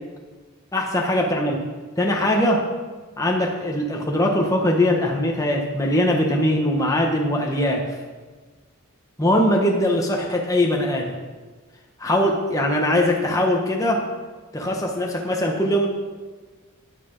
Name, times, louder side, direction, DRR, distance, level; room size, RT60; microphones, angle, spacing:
voice 1, 0.7-1.6 2.0-2.7 3.2-7.9 9.2-11.2 12.0-14.1 14.5-15.9, left 1 dB, 15° left, 0 dB, 1.1 m, -21 dB
10.5 x 10.5 x 5.3 m, 1.3 s
head